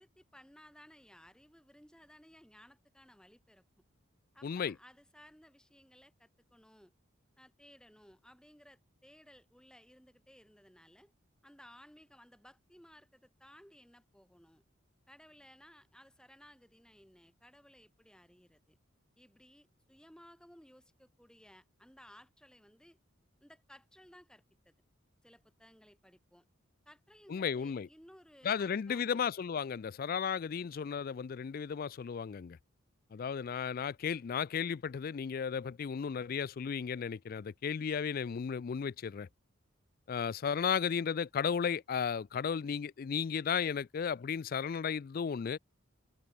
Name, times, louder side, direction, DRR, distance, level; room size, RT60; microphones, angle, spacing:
voice 1, 0.0-3.6 4.3-6.9 7.4-11.1 11.4-14.6 15.1-18.8 19.2-23.0 23.4-24.7 25.2-26.5 26.9-29.2, equal, 5° left, 6.0 m, -59 dB
voice 2, 4.4-4.7 27.3-27.9 28.4-32.6 33.1-39.3 40.1-45.6, left 7 dB, 45° left, 0.3 m, -34 dB
head